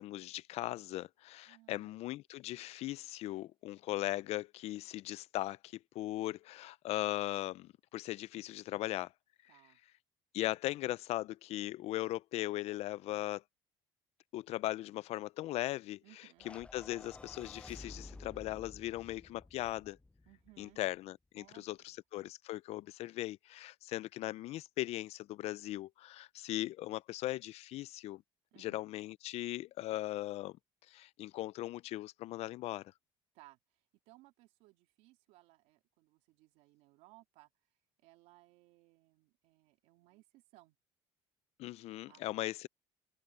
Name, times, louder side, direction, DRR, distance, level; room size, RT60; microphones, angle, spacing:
voice 1, 0.0-9.1 10.3-13.4 14.3-16.0 16.5-20.0 20.6-28.2 28.6-30.6 30.9-32.8 41.6-42.7, left 16 dB, 65° left, 0.5 m, -39 dB
voice 2, 1.4-2.0 9.5-9.8 16.0-16.5 20.3-20.8 21.4-22.0 28.5-28.9 33.3-37.5 38.0-40.8 42.1-42.4, right 19 dB, 85° right, 3.6 m, -63 dB
sound 1, 16.4-20.8, left 2 dB, 10° left, 0.5 m, -53 dB
cardioid pair, 105°, 12 cm